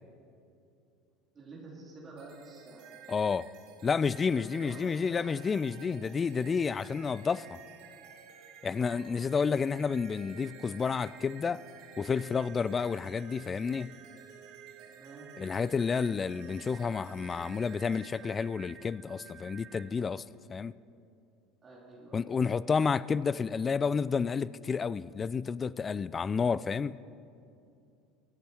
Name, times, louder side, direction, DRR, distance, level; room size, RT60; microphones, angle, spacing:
voice 1, 1.3-2.8 4.3-5.3 8.7-9.2 14.9-15.3 21.6-22.5, right 3 dB, 30° right, -5 dB, 3.9 m, -50 dB
sound 1, 2.2-19.8, right 7 dB, 60° right, 1.7 m, -52 dB
voice 2, 3.1-3.5 3.8-7.6 8.6-11.6 12.0-13.9 15.4-20.2 20.5-20.7 22.1-27.0, left 5 dB, 30° left, 20 dB, 0.4 m, -30 dB
24.0 x 8.4 x 4.6 m, 2.6 s
hypercardioid pair, 70°, 0 cm